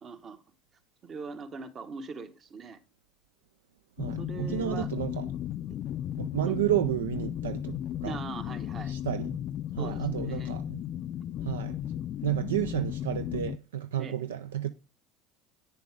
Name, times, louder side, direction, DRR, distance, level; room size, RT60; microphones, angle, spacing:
voice 1, 0.0-0.4 1.0-2.8 4.2-4.9 6.5-6.6 8.0-8.9 9.8-10.5 14.0-14.2, right 4 dB, 40° right, 1.3 m, -41 dB
sound 1, 4.0-13.6, left 11 dB, 50° left, 0.4 m, -35 dB
voice 2, 4.0-5.3 6.2-8.2 8.9-9.4 9.7-10.8 11.4-11.8 12.2-14.7, right 12 dB, 80° right, 0.4 m, -31 dB
8.6 x 6.9 x 4.9 m
hypercardioid pair, 70°, 0 cm